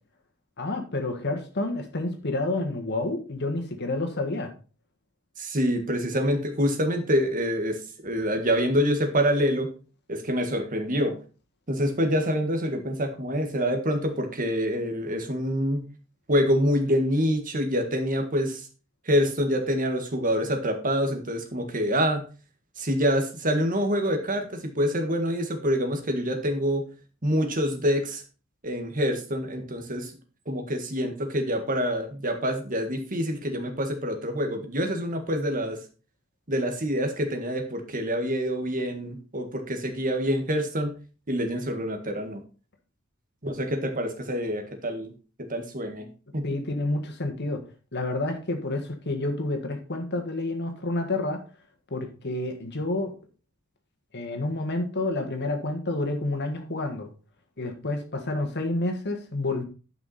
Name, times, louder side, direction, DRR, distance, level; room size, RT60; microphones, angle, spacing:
voice 1, 0.6-4.5 46.4-47.6 47.9-51.4 51.9-53.1 54.1-57.1 57.6-59.6, left 2 dB, 55° left, 5 dB, 1.8 m, -29 dB
voice 2, 5.4-9.7 10.1-11.2 11.7-15.8 16.3-18.7 19.1-22.2 22.8-26.8 27.2-28.2 28.6-30.1 30.5-35.8 36.5-40.9 41.3-42.4 43.4-45.1 45.5-46.1 46.3-46.4, equal, 40° right, 4 dB, 1.7 m, -26 dB
11.0 x 5.9 x 4.2 m, 0.35 s
head